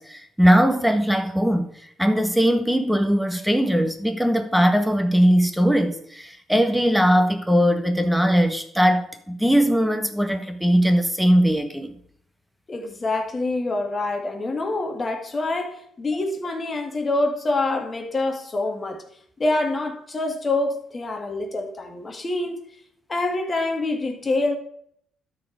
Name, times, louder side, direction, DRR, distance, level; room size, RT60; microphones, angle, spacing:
voice 1, 0.0-1.7 2.0-11.9, equal, ahead, 1.6 m, -20 dB
voice 2, 12.7-19.0 19.4-22.6 23.1-24.6, left 2 dB, 30° left, 2.0 m, -26 dB
12.5 x 4.9 x 6.5 m
cardioid pair, 90°, 0 cm